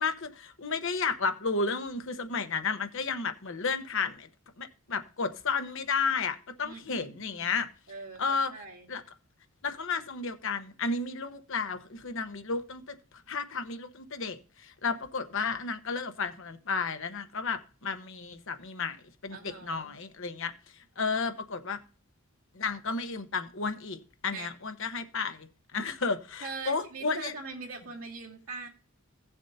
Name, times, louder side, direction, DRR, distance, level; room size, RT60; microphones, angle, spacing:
voice 1, 0.0-4.3 4.6-7.7 8.2-8.5 8.9-9.0 9.6-13.0 13.3-19.0 19.2-20.5 21.0-21.8 22.5-27.3, left 4 dB, 60° left, 9 dB, 1.1 m, -32 dB
voice 2, 6.6-7.5 7.9-9.0 19.3-20.0 24.3-24.5 26.4-28.7, right 4 dB, 75° right, -1 dB, 2.4 m, -42 dB
17.0 x 7.1 x 2.8 m, 0.38 s
head